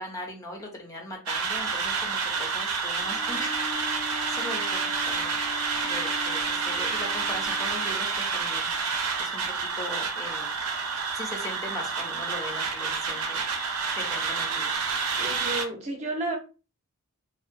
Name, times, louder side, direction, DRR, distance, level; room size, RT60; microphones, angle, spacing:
voice 1, 0.0-5.4 5.8-8.7 9.2-10.5 11.1-13.4 13.9-14.8, left 1 dB, 15° left, 0.5 m, -39 dB
sound 1, 1.3-15.6, right 5 dB, 75° right, 0.6 m, -29 dB
Bowed string instrument, 2.9-8.0, left 4 dB, 75° left, 0.5 m, -40 dB
voice 2, 15.2-16.4, right 2 dB, 30° right, 0.5 m, -31 dB
2.6 x 2.0 x 2.5 m
head